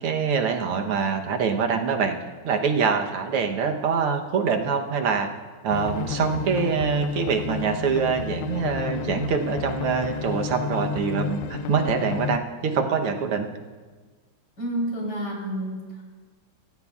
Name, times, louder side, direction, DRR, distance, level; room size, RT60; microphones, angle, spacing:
voice 1, 0.0-2.2 2.4-5.3 5.6-13.5, right 6 dB, 85° right, 4 dB, 2.0 m, -24 dB
sound 1, 5.7-12.4, left 7 dB, 75° left, 1.3 m, -31 dB
voice 2, 14.6-16.0, right 1 dB, 50° left, -2 dB, 4.3 m, -29 dB
25.0 x 15.5 x 2.4 m, 1.4 s
omnidirectional pair, 2.4 m